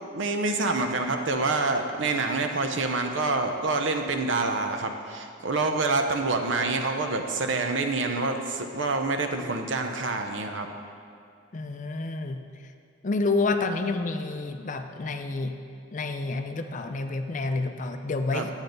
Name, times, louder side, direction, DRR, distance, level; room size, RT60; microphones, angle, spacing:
voice 1, 0.1-10.7 18.3-18.5, right 3 dB, 65° right, 5 dB, 0.7 m, -27 dB
voice 2, 11.5-12.4 13.0-15.6 15.9-18.5, left 3 dB, 40° left, 7 dB, 0.4 m, -29 dB
9.7 x 8.9 x 4.0 m, 2.4 s
head